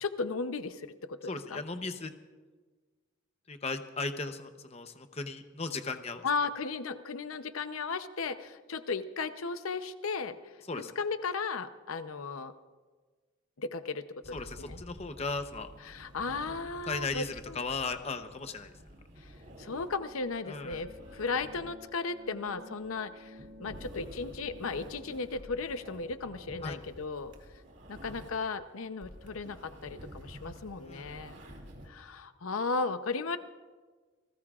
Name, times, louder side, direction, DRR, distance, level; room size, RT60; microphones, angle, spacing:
voice 1, 0.0-1.6 6.2-10.4 11.0-12.5 13.6-14.8 15.8-17.6 19.6-27.3 27.9-31.4 31.9-33.4, left 4 dB, 85° left, 10 dB, 0.7 m, -35 dB
voice 2, 1.2-2.1 3.5-6.2 10.7-10.9 14.3-15.7 16.9-18.7 20.5-20.8 26.6-26.8 30.8-31.2, left 3 dB, 30° left, 8 dB, 0.8 m, -36 dB
sound 1, 14.2-28.5 28.8-31.9, equal, 55° right, 2.5 m, -50 dB
sound 2, 19.3-27.9, left 1 dB, 85° right, 6.4 m, -54 dB
29.0 x 18.5 x 2.4 m, 1.4 s
head